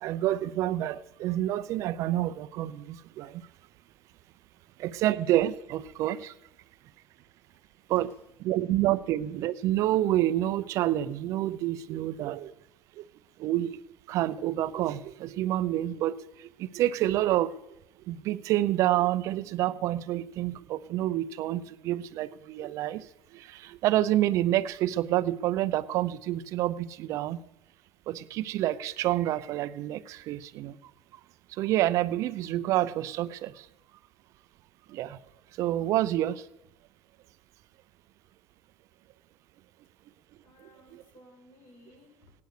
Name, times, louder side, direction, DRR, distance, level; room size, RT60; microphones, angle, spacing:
voice 1, 0.0-3.4 4.8-6.3 7.9-8.1 8.4-12.5 13.0-13.1 13.4-13.8 14.1-17.5 18.1-23.1 23.3-27.4 28.1-30.8 31.6-33.7 34.9-35.2 35.6-36.4 40.9-41.0, right 14 dB, 60° right, 15 dB, 0.7 m, -28 dB
voice 2, 7.2-8.2 40.4-42.3, left 1 dB, 45° left, 0 dB, 6.5 m, -59 dB
18.0 x 9.5 x 6.7 m, 0.87 s
supercardioid pair, 110°, 6 cm